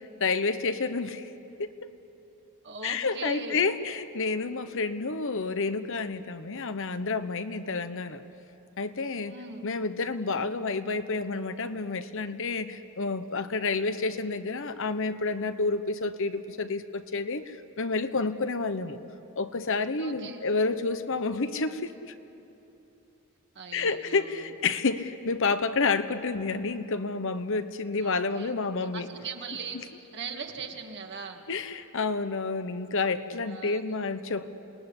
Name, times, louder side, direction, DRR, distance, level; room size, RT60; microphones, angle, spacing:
voice 1, 0.2-1.3 1.6-1.7 2.8-8.2 8.8-9.3 9.6-19.0 19.4-22.1 23.7-29.1 29.7-29.9 31.5-34.5, left 4 dB, 65° left, 10 dB, 1.0 m, -29 dB
voice 2, 2.6-3.6 9.3-9.7 20.0-20.5 23.5-24.5 28.0-28.5 28.9-29.8 30.1-31.4 33.5-33.8, right 5 dB, 55° right, 3 dB, 2.2 m, -40 dB
27.5 x 19.5 x 9.9 m, 2.9 s
head